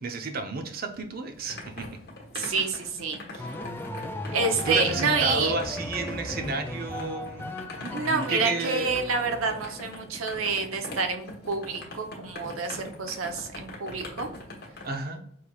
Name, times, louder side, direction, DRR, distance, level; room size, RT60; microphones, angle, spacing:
voice 1, 0.0-2.0 2.4-2.7 4.6-9.0 14.8-15.2, right 3 dB, 45° right, 6 dB, 0.6 m, -32 dB
sound 1, 0.9-14.9, left 2 dB, 55° left, 1.1 m, -42 dB
voice 2, 2.3-3.5 4.3-5.5 7.9-14.3, right 4 dB, 90° right, 5 dB, 0.7 m, -28 dB
sound 2, 3.4-9.9, left 1 dB, 10° left, 0.3 m, -37 dB
5.6 x 3.3 x 2.3 m, 0.67 s
head